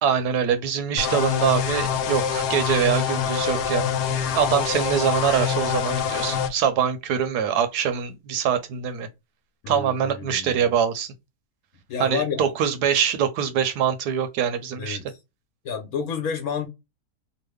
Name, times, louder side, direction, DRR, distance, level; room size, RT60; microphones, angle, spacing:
voice 1, 0.0-4.0 4.3-9.1 9.7-11.1 12.0-15.0, right 8 dB, 80° right, 1.1 m, -24 dB
sound 1, 1.0-6.5, left 8 dB, 85° left, 1.2 m, -25 dB
voice 2, 9.6-10.7 11.9-12.5 14.8-15.2 15.6-16.7, left 6 dB, 65° left, 1.2 m, -30 dB
3.1 x 2.1 x 3.3 m
omnidirectional pair, 1.8 m